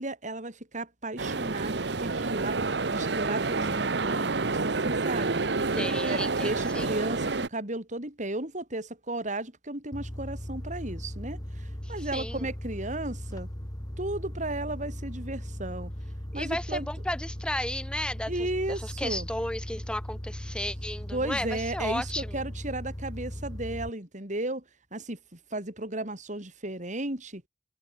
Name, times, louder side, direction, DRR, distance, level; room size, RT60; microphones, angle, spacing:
voice 1, 0.0-2.5 2.9-5.4 6.1-13.5 14.0-15.9 16.3-16.9 18.3-19.3 21.1-24.6 24.9-27.4, right 2 dB, 45° right, 5.8 m, -34 dB
sound 1, 1.2-7.5, right 3 dB, 75° right, 1.1 m, -28 dB
voice 2, 5.7-7.0 11.8-12.5 16.3-22.4, left 1 dB, 5° left, 4.3 m, -34 dB
sound 2, 9.9-23.9, equal, 20° left, 2.9 m, -38 dB
head